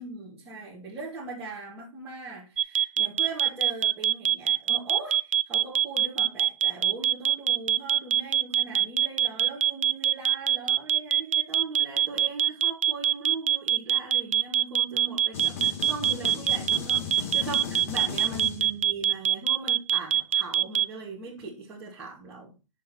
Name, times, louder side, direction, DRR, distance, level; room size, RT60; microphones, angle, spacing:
voice 1, 0.0-22.5, right 3 dB, 10° right, -10 dB, 2.2 m, -40 dB
sound 1, 2.6-20.8, right 11 dB, 75° right, 0.5 m, -23 dB
sound 2, 15.3-19.0, left 7 dB, 25° left, 1.5 m, -37 dB
10.5 x 6.9 x 4.4 m, 0.30 s
hypercardioid pair, 180°, 17 cm